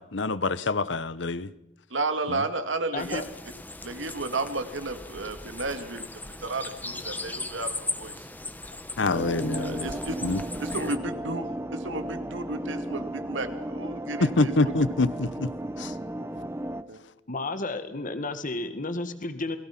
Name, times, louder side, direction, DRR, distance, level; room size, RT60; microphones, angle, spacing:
voice 1, 0.0-1.5 2.3-2.4 9.0-9.9 10.2-10.4 14.2-15.5 15.8-15.9, left 3 dB, 70° left, 17 dB, 0.9 m, -26 dB
voice 2, 1.9-3.2 3.8-6.1 6.4-8.3 9.5-10.2 10.6-11.5 11.7-14.7 16.9-17.0, right 2 dB, 85° right, 8 dB, 2.3 m, -32 dB
voice 3, 2.9-3.2 17.3-19.6, left 2 dB, 45° left, 10 dB, 1.8 m, -32 dB
sound 1, 3.0-11.0, left 2 dB, 10° left, 1.3 m, -38 dB
sound 2, 9.1-16.8, right 1 dB, 15° right, 0.9 m, -34 dB
28.5 x 21.0 x 6.0 m, 0.88 s
head